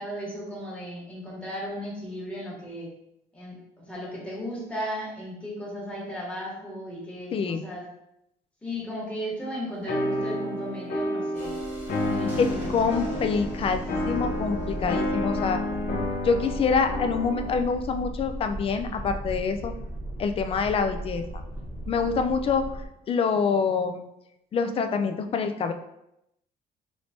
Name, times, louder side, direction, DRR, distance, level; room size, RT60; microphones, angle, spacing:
voice 1, 0.0-2.9 3.3-7.9 8.6-11.5 11.9-13.3, equal, 5° left, -5 dB, 1.3 m, -36 dB
voice 2, 7.3-7.6 12.4-15.6 16.2-19.7 20.2-21.2 21.9-22.8 23.1-24.0 24.5-25.7, left 5 dB, 35° left, 7 dB, 0.3 m, -26 dB
sound 1, 9.9-17.7, left 1 dB, 55° left, 0.7 m, -30 dB
Thunderstorm, 11.4-22.9, right 1 dB, 10° right, 1.1 m, -37 dB
3.2 x 3.0 x 2.6 m, 0.81 s
cardioid pair, 110°, 17 cm